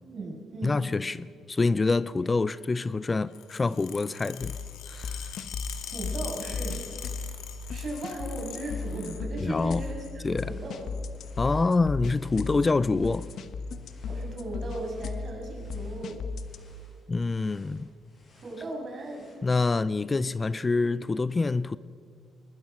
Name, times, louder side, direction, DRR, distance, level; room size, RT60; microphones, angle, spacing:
voice 1, 0.0-0.8 5.8-6.7 7.7-10.1 10.4-10.9 14.1-16.1 18.4-19.2, right 2 dB, 45° right, 7.5 m, -37 dB
voice 2, 0.6-4.6 4.9-5.4 9.4-9.8 10.2-10.5 11.4-13.3 17.1-17.9 19.4-21.8, left 3 dB, 25° left, 0.4 m, -26 dB
sound 1, 3.3-9.2 9.6-10.1 10.9-11.4 12.5-12.7 13.6-13.9 14.2-14.3 14.6-14.7 15.0-15.5 16.1-16.2 17.1-17.2, left 9 dB, 90° left, 2.3 m, -42 dB
sound 2, 4.4-16.6, left 4 dB, 70° left, 1.2 m, -36 dB
sound 3, 6.6-19.3, left 2 dB, 45° left, 7.4 m, -62 dB
22.0 x 20.0 x 6.2 m
cardioid pair, 90°, 0 cm